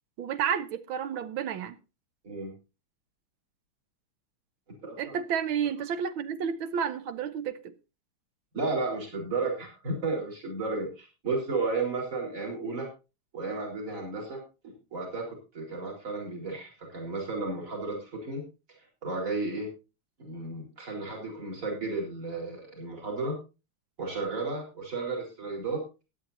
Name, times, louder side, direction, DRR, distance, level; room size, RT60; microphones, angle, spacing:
voice 1, 0.2-1.8 5.0-7.7, right 8 dB, 75° right, 1.6 m, -31 dB
voice 2, 4.8-5.2 8.5-12.9 13.3-18.4 19.0-19.7 20.2-23.4 24.0-25.8, right 3 dB, 40° right, 4.6 m, -33 dB
17.0 x 10.5 x 2.8 m
omnidirectional pair, 2.3 m